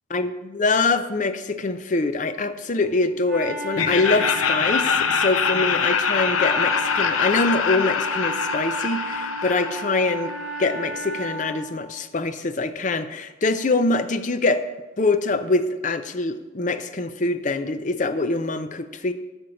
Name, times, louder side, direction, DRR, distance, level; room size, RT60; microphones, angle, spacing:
voice 1, 0.1-10.3 10.6-14.6 15.0-19.1, left 3 dB, 35° left, 10 dB, 0.5 m, -24 dB
Wind instrument woodwind instrument, 2.7-11.8, right 3 dB, 55° right, 2.9 m, -35 dB
Laughter, 3.7-10.7, left 6 dB, 90° left, 0.7 m, -24 dB
12.5 x 4.5 x 6.4 m, 1.2 s
head